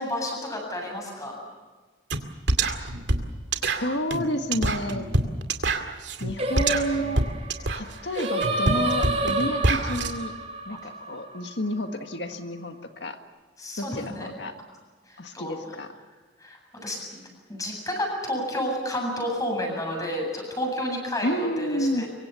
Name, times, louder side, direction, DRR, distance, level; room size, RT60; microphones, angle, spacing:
voice 1, 0.0-1.4 13.6-14.3 15.1-15.8 16.4-17.2 17.5-22.1, left 1 dB, 20° left, 1 dB, 7.9 m, -31 dB
sound 1, 2.1-2.2 2.5-10.1, right 2 dB, 75° right, 2.3 m, -26 dB
voice 2, 3.6-5.1 6.2-7.2 7.8-10.3 10.7-13.2 13.8-14.5 15.2-15.9 21.2-22.0, equal, 70° left, 6 dB, 1.8 m, -30 dB
Singing, 6.4-11.7, right 2 dB, 35° right, 5.2 m, -29 dB
24.5 x 24.0 x 7.1 m, 1.4 s
head